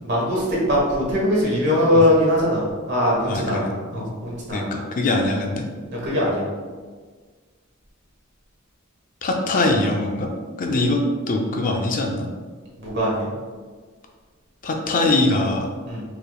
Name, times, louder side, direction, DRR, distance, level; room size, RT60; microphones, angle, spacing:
voice 1, 0.0-2.6 2.9-3.7 3.9-4.7 5.9-6.4 12.8-13.3 15.9-16.0, left 1 dB, 55° right, -5 dB, 1.3 m, -21 dB
voice 2, 3.3-3.7 3.9-4.1 4.5-5.6 9.2-10.3 10.6-11.0 11.3-12.3 14.6-15.7, left 2 dB, 40° left, 2 dB, 0.4 m, -22 dB
4.7 x 3.2 x 2.3 m, 1.5 s
head